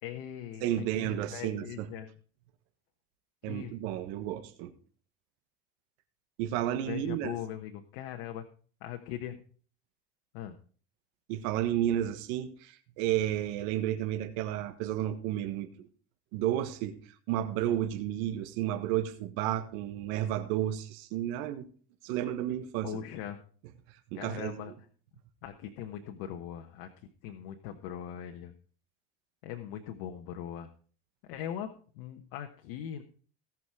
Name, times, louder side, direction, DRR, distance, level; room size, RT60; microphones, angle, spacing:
voice 1, 0.0-0.7 1.0-2.1 3.4-3.7 6.8-8.4 8.8-9.4 10.3-10.6 22.8-23.4 24.1-24.7 25.4-26.9 27.2-28.5 29.4-30.7 31.3-33.0, left 10 dB, 80° left, 5 dB, 1.3 m, -40 dB
voice 2, 0.6-1.9 3.4-4.7 6.4-7.4 11.3-15.9 16.3-21.7 22.0-23.0 24.1-24.6, right 12 dB, 75° right, 9 dB, 1.5 m, -32 dB
18.0 x 6.2 x 4.9 m, 0.42 s
supercardioid pair, 110°, 30 cm